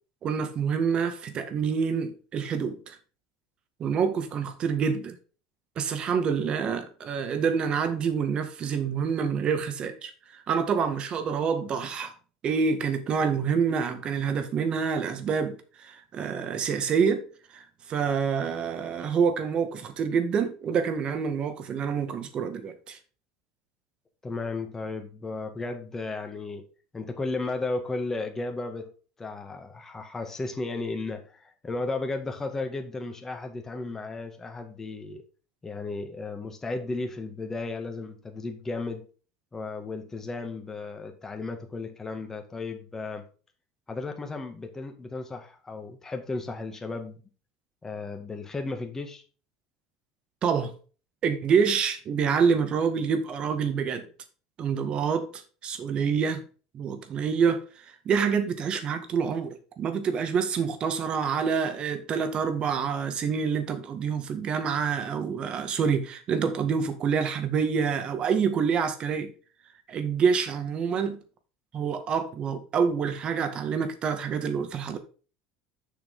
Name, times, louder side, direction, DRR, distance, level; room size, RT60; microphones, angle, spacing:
voice 1, 0.2-2.9 3.8-5.1 5.7-12.1 12.4-17.3 17.5-23.0 50.4-50.7 51.2-54.1 54.6-56.4 56.7-69.3 69.9-71.2 71.7-75.0, right 6 dB, 40° right, 1.7 m, -27 dB
voice 2, 24.2-26.7 26.9-28.9 29.2-35.2 35.6-39.0 39.5-43.2 43.9-47.2 47.8-49.2, left 3 dB, 15° left, 1.8 m, -34 dB
7.1 x 6.0 x 5.4 m
supercardioid pair, 110°, 2 cm